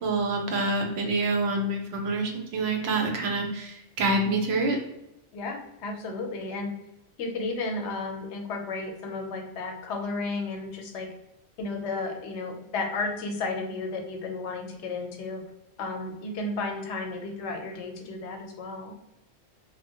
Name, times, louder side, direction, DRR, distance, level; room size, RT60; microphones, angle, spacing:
voice 1, 0.0-4.8, right 2 dB, 70° right, 3 dB, 0.8 m, -27 dB
voice 2, 5.3-6.7 7.2-11.1 11.6-15.4 15.8-18.9, left 3 dB, 90° left, 3 dB, 0.9 m, -33 dB
2.9 x 2.1 x 2.7 m, 0.91 s
omnidirectional pair, 1.1 m